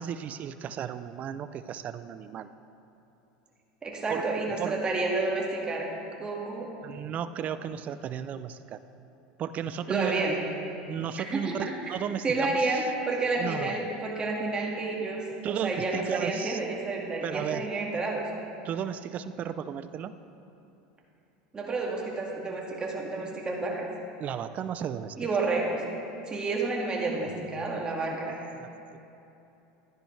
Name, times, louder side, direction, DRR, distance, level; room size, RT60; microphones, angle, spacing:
voice 1, 0.0-2.5 4.1-4.3 4.6-4.8 6.8-8.8 9.4-10.4 10.8-12.9 13.4-13.8 15.4-16.6 17.2-17.7 18.6-20.2 24.2-25.3 27.2-27.7 28.1-29.0, right 9 dB, 40° right, 12 dB, 0.4 m, -35 dB
voice 2, 3.8-6.7 9.9-10.4 11.3-11.9 12.2-18.3 21.5-23.9 25.2-25.9 26.2-28.4, right 3 dB, 20° right, -2 dB, 1.9 m, -30 dB
13.0 x 10.0 x 3.3 m, 2.9 s
supercardioid pair, 115°, 4 cm